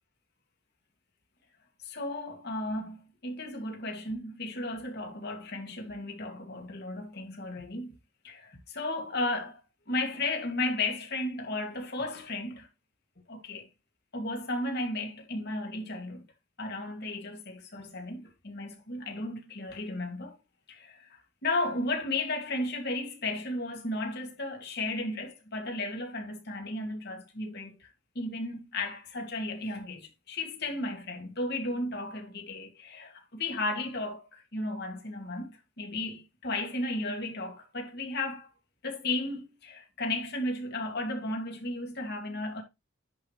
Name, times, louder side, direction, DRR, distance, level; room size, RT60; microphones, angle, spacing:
voice 1, 1.8-8.0 8.2-9.6 9.9-12.7 13.3-13.7 14.1-16.2 16.6-20.4 20.7-27.9 28.1-38.5 38.8-42.6, left 2 dB, 55° left, 2.4 m, -34 dB
10.5 x 4.8 x 3.3 m
head